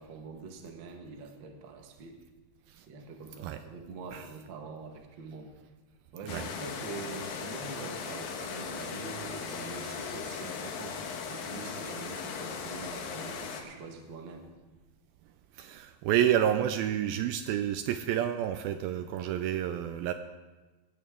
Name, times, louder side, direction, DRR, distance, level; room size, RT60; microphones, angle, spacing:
voice 1, 0.0-2.2 2.9-5.5 6.1-11.0 11.3-14.4, right 4 dB, 60° right, 3 dB, 1.2 m, -44 dB
sound 1, 6.3-13.6, left 5 dB, 80° left, 3.3 m, -38 dB
voice 2, 15.6-20.1, right 10 dB, 80° right, 9 dB, 2.2 m, -29 dB
17.5 x 15.0 x 3.7 m, 1.2 s
omnidirectional pair, 4.6 m